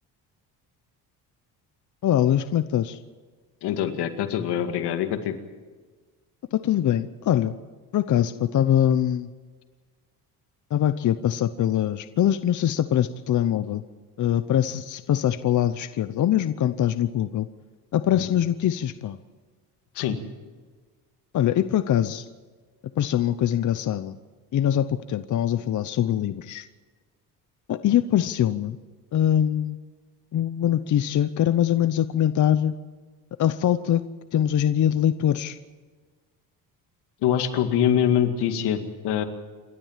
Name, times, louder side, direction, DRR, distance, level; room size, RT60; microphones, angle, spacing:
voice 1, 2.0-3.0 6.5-7.5 7.9-9.3 10.7-13.8 14.2-17.5 17.9-19.2 21.3-22.2 23.0-24.2 24.5-26.7 27.7-28.8 29.1-29.8 30.3-32.7 33.4-34.0 34.3-35.6, left 11 dB, 50° left, 12 dB, 0.8 m, -23 dB
voice 2, 3.6-5.4 18.1-18.3 19.9-20.2 37.2-39.2, left 9 dB, 85° left, 7 dB, 2.2 m, -24 dB
28.0 x 12.5 x 7.4 m, 1.4 s
cardioid pair, 115°, 39 cm